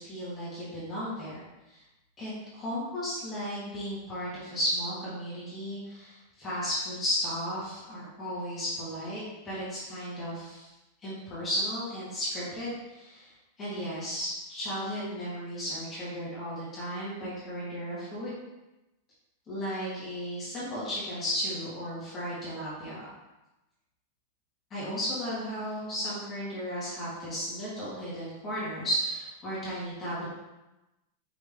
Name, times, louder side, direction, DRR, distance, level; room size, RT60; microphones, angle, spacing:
voice 1, 0.0-1.8 2.2-10.7 11.0-13.3 13.6-18.4 19.5-23.1 24.7-30.3, equal, 15° left, -9 dB, 1.4 m, -34 dB
5.1 x 3.0 x 3.5 m, 1.0 s
supercardioid pair, 180°, 0 cm